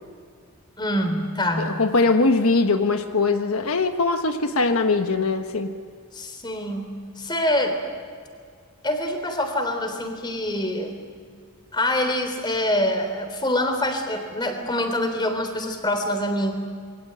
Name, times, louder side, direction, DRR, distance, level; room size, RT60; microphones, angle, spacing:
voice 1, 0.8-1.8 6.1-7.8 8.8-11.0 11.7-16.6, left 1 dB, 20° left, 6 dB, 3.5 m, -25 dB
voice 2, 1.6-5.8, left 3 dB, 80° left, 7 dB, 1.3 m, -21 dB
27.5 x 22.5 x 8.9 m, 2.1 s
head